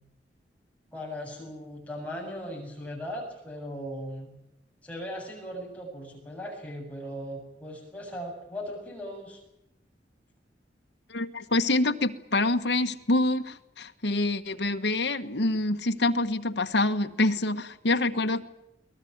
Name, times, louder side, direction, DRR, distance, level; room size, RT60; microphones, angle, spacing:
voice 1, 0.9-4.3 4.8-9.4, equal, 10° left, -1 dB, 7.6 m, -38 dB
voice 2, 11.1-18.4, left 2 dB, 75° left, 7 dB, 1.5 m, -26 dB
23.0 x 19.5 x 9.5 m, 0.84 s
head